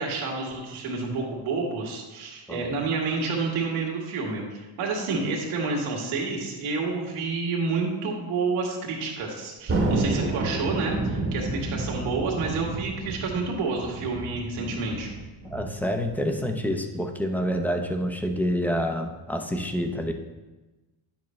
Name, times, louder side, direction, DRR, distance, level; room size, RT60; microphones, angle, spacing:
voice 1, 0.0-15.1, right 4 dB, 85° right, -2 dB, 2.0 m, -29 dB
Thunder, 9.7-16.5, right 2 dB, 25° right, 1.1 m, -30 dB
voice 2, 15.5-20.1, equal, 5° left, 5 dB, 0.6 m, -27 dB
9.9 x 7.2 x 3.1 m, 1.1 s
cardioid pair, 125°, 48 cm